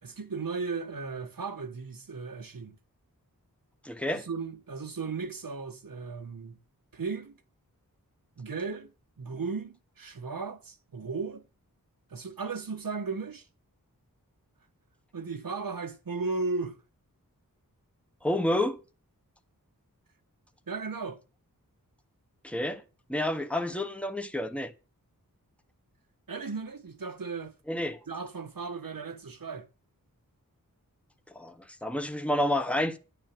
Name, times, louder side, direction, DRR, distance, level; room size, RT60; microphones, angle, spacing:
voice 1, 0.0-2.8 4.1-6.6 6.9-7.4 8.4-11.5 12.1-13.5 15.1-16.8 20.7-21.2 26.3-27.6 28.1-29.7, right 4 dB, 75° right, 1.5 m, -36 dB
voice 2, 3.8-4.3 18.2-18.8 22.4-22.8 23.1-24.7 27.7-28.0 31.3-33.0, left 1 dB, 5° left, 1.4 m, -29 dB
11.0 x 7.3 x 7.7 m
wide cardioid pair, 80°, 35 cm